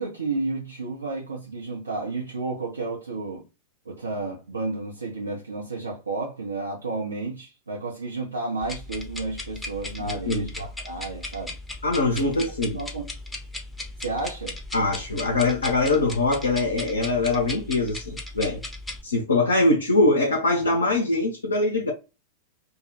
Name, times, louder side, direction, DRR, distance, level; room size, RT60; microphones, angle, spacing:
voice 1, 0.0-3.5 3.9-11.5 12.2-12.4 12.7-13.1 14.0-14.5, right 3 dB, 75° right, 0.5 m, -31 dB
sound 1, 8.6-19.0, left 2 dB, 5° left, 0.6 m, -37 dB
voice 2, 10.0-10.5 11.8-12.8 14.7-18.6 19.0-21.9, left 2 dB, 75° left, 0.5 m, -23 dB
2.1 x 2.0 x 2.9 m
figure-of-eight pair, 90°, 0 cm